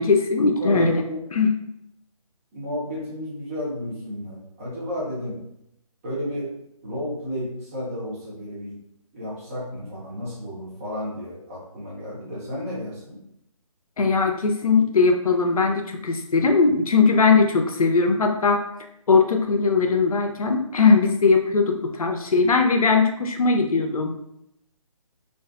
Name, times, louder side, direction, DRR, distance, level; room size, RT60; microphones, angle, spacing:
voice 1, 0.0-1.0 1.3-1.6 14.0-18.7 19.1-24.1, left 4 dB, 80° left, 4 dB, 0.5 m, -20 dB
voice 2, 0.6-1.3 2.5-5.4 6.0-8.8 9.1-13.2, equal, 25° right, -6 dB, 0.8 m, -32 dB
2.5 x 2.3 x 2.3 m, 0.78 s
figure-of-eight pair, 150°, 18 cm